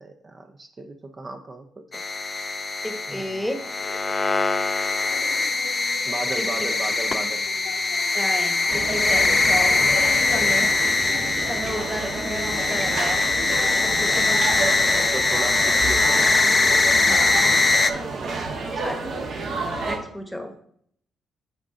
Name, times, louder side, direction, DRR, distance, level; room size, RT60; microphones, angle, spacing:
voice 1, 0.0-1.7 1.9-2.0 3.1-3.7 6.1-7.5 13.8-14.3 14.9-16.3 18.1-18.9, right 2 dB, 30° right, 5 dB, 0.6 m, -36 dB
sound 1, 1.9-17.9, left 3 dB, 25° left, 0.5 m, -22 dB
voice 2, 2.8-3.6 6.3-6.7 8.1-9.8 10.3-10.7 11.5-13.2 13.6-15.1 17.0-17.6 18.8-19.0 19.8-20.5, equal, ahead, 5 dB, 1.0 m, -32 dB
sound 2, 3.8-14.5, left 5 dB, 85° left, 0.8 m, -41 dB
sound 3, 8.7-20.0, right 3 dB, 65° right, 1.3 m, -30 dB
9.7 x 3.7 x 3.8 m, 0.66 s
cardioid pair, 90°, 0 cm